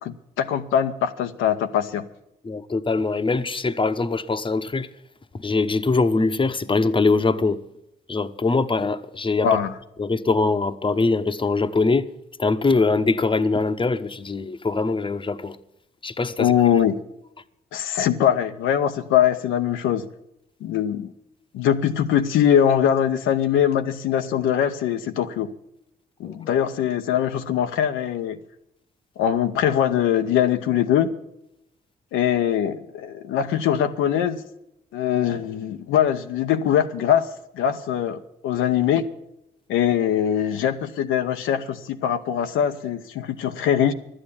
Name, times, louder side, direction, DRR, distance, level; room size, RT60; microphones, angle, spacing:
voice 1, 0.0-2.0 9.4-9.7 16.4-16.9 17.7-20.1 20.6-21.1 21.5-25.5 26.2-28.4 29.2-31.1 32.1-34.4 34.9-37.3 37.6-39.0 39.7-43.9, left 9 dB, 80° left, 0.7 m, -22 dB
voice 2, 2.4-4.9 5.3-7.6 8.1-9.5 10.0-12.1 12.4-15.6 16.0-16.5 26.3-26.6, left 3 dB, 25° left, 0.9 m, -22 dB
11.5 x 8.8 x 9.7 m
supercardioid pair, 50°, 20 cm